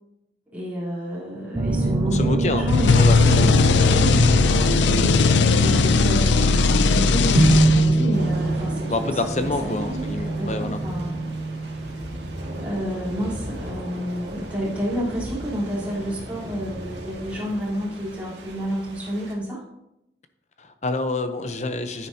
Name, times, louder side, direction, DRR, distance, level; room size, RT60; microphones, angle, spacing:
voice 1, 0.5-4.9 5.5-12.0 12.6-19.6, equal, 10° right, -8 dB, 3.7 m, -30 dB
sound 1, 1.5-12.7, right 2 dB, 30° right, 0.6 m, -25 dB
voice 2, 2.1-2.7 2.9-3.4 8.9-10.8 20.6-22.1, left 2 dB, 40° left, 8 dB, 0.7 m, -27 dB
sound 2, 2.7-8.2, left 4 dB, 85° left, 0.5 m, -18 dB
sound 3, 8.1-19.3, right 1 dB, 85° right, 1.9 m, -36 dB
9.9 x 9.7 x 2.8 m, 0.86 s
head